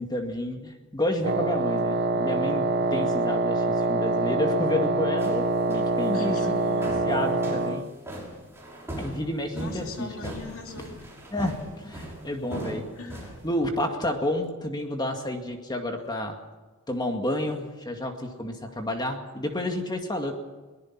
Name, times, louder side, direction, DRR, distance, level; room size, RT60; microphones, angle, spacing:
voice 1, 0.0-2.6 2.9-6.4 7.1-7.9 9.0-10.3 11.3-12.8 13.4-16.4 16.9-20.3, left 1 dB, 20° left, 3 dB, 2.2 m, -30 dB
Wind instrument woodwind instrument, 1.2-7.9, right 3 dB, 50° right, 1.0 m, -25 dB
sound 1, 5.2-13.6, right 1 dB, 10° right, 6.1 m, -40 dB
voice 2, 6.1-7.1 9.5-11.1 13.0-13.4, left 3 dB, 65° left, 2 dB, 3.1 m, -40 dB
22.5 x 20.0 x 6.0 m, 1.2 s
head